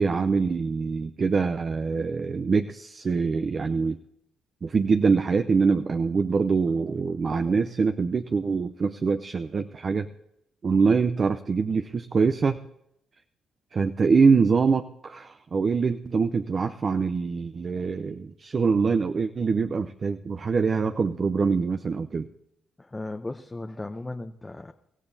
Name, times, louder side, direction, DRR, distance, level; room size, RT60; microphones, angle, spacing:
voice 1, 0.0-4.0 4.6-10.1 10.6-12.6 13.7-22.3, right 5 dB, 40° right, 8 dB, 0.5 m, -24 dB
voice 2, 22.8-24.7, left 2 dB, 20° left, 6 dB, 0.6 m, -36 dB
23.5 x 15.0 x 2.7 m, 0.78 s
cardioid pair, 90°, 0 cm